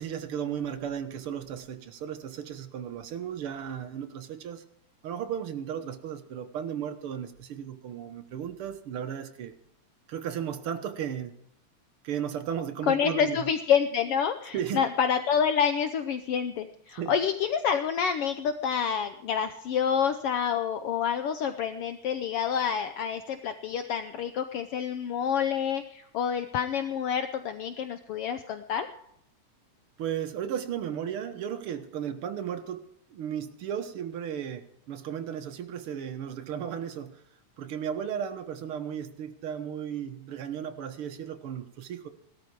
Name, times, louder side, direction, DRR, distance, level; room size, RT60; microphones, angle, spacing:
voice 1, 0.0-4.6 5.0-9.5 10.1-11.3 12.0-13.5 14.5-14.8 17.0-17.1 30.0-32.8 33.1-37.2 37.6-42.1, right 9 dB, 60° right, 8 dB, 1.6 m, -35 dB
voice 2, 12.9-28.9, left 7 dB, 80° left, 9 dB, 1.3 m, -28 dB
18.0 x 13.0 x 4.7 m, 0.72 s
omnidirectional pair, 3.5 m